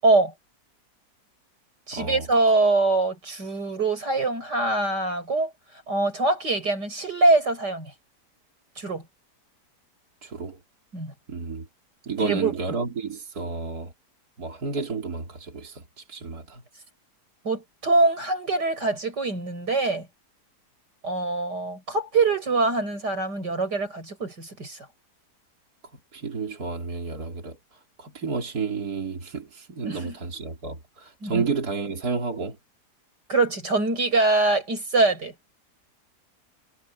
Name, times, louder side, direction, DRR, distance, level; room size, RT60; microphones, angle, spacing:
voice 1, 0.0-0.3 1.9-5.5 5.9-7.9 8.8-9.0 10.9-11.1 12.2-12.5 17.4-20.1 21.0-24.9 29.8-30.2 31.2-31.4 33.3-35.3, right 3 dB, 85° right, 8.1 m, -23 dB
voice 2, 1.9-2.3 10.2-10.6 11.3-11.7 12.0-13.9 14.4-16.6 26.1-32.6, right 4 dB, 65° right, 3.7 m, -31 dB
omnidirectional pair, 1.8 m